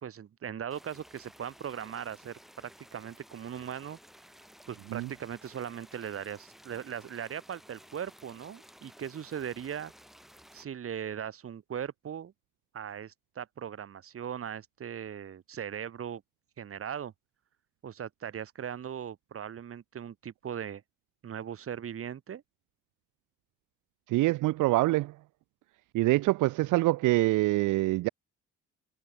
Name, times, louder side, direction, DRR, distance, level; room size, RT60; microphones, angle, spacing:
voice 1, 0.0-4.0 4.7-9.9 10.5-12.3 12.7-16.2 16.6-17.1 17.8-20.8 21.2-22.4, right 8 dB, 50° right, 1.5 m, -39 dB
sound 1, 0.7-10.6, equal, ahead, 3.2 m, -55 dB
voice 2, 24.1-25.1 25.9-28.1, right 19 dB, 85° right, 0.6 m, -25 dB
cardioid pair, 90°, 30 cm